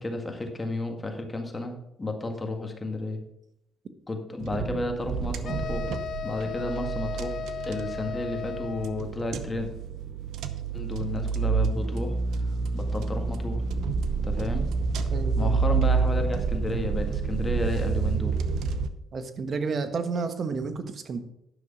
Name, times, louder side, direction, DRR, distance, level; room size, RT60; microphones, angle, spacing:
voice 1, 0.0-3.2 4.1-5.8 6.2-7.4 7.7-9.7 10.7-12.2 12.7-13.6 14.2-14.7 15.4-18.3, left 2 dB, 20° left, 4 dB, 1.8 m, -32 dB
sound 1, 4.4-18.9, right 5 dB, 80° right, 0.8 m, -28 dB
sound 2, 5.4-9.1, left 8 dB, 60° left, 0.4 m, -36 dB
voice 2, 15.1-15.6 19.1-21.2, right 4 dB, 50° right, 9 dB, 1.2 m, -31 dB
10.5 x 6.2 x 5.3 m, 0.83 s
cardioid pair, 90°, 0 cm